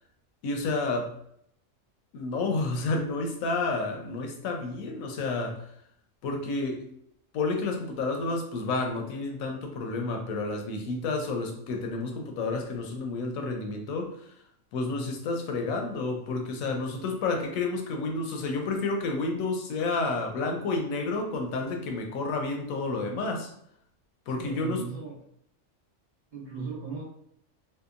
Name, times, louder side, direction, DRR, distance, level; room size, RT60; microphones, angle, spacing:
voice 1, 0.4-1.1 2.1-5.6 6.2-6.8 7.3-14.1 14.7-23.5 24.3-24.8, left 3 dB, 85° left, 3 dB, 1.0 m, -30 dB
voice 2, 24.3-25.2 26.3-27.0, right 4 dB, 45° right, -7 dB, 0.6 m, -37 dB
2.8 x 2.2 x 2.4 m, 0.72 s
omnidirectional pair, 1.4 m